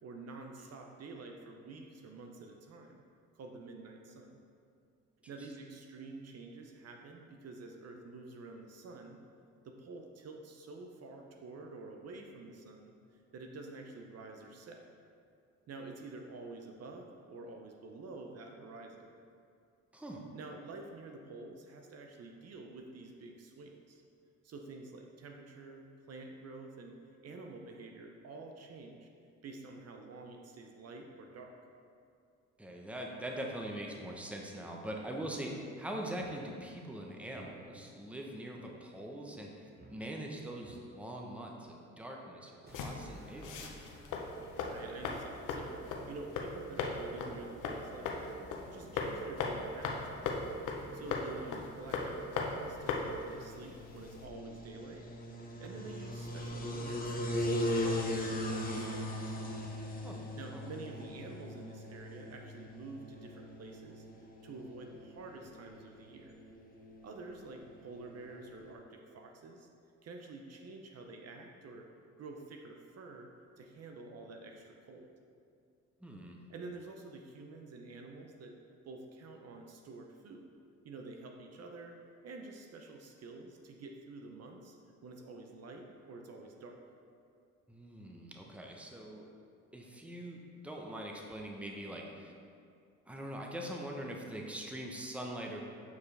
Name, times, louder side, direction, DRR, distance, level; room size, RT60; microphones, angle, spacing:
voice 1, 0.0-3.0 3.3-4.4 5.3-9.2 9.6-14.8 15.7-19.1 20.3-24.0 24.4-29.1 29.4-31.5 44.6-48.4 48.7-50.4 50.9-55.1 55.6-59.4 60.4-64.0 64.4-66.4 67.0-69.7 70.0-71.9 72.2-73.3 73.6-75.1 76.5-78.6 78.8-80.5 80.8-82.0 82.2-84.8 85.0-86.8, right 3 dB, 55° right, 3 dB, 0.7 m, -49 dB
voice 2, 19.9-20.2 32.6-43.6 51.3-51.4 60.0-60.2 60.5-60.6 76.0-76.4 87.7-89.3 89.7-92.3 93.1-95.7, right 1 dB, 5° right, 0 dB, 0.8 m, -42 dB
sound 1, 35.2-35.3 36.1-36.3 37.3-37.9 38.5-38.7 39.3-39.5 39.7-40.0 40.6-40.8 42.6-52.4, right 1 dB, 30° right, 1.0 m, -56 dB
sound 2, 42.7-54.2, left 3 dB, 80° left, 0.8 m, -39 dB
sound 3, 50.8-68.7, left 1 dB, 30° left, 0.9 m, -40 dB
8.0 x 4.6 x 3.3 m, 2.4 s
cardioid pair, 90°, 30 cm